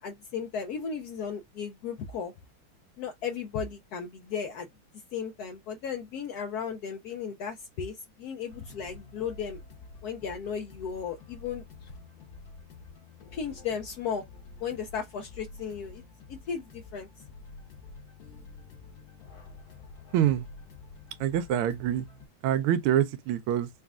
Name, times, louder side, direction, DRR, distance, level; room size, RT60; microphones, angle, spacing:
voice 1, 0.0-2.3 3.0-4.7 5.1-9.6 10.0-11.9 13.3-14.2 14.6-16.0 16.3-17.1, left 7 dB, 80° left, 0.8 m, -35 dB
sound 1, 8.5-22.3, left 4 dB, 55° left, 1.4 m, -49 dB
voice 2, 20.1-20.5 21.2-22.1 22.4-23.7, right 11 dB, 90° right, 1.5 m, -25 dB
4.2 x 2.2 x 3.6 m
omnidirectional pair, 2.3 m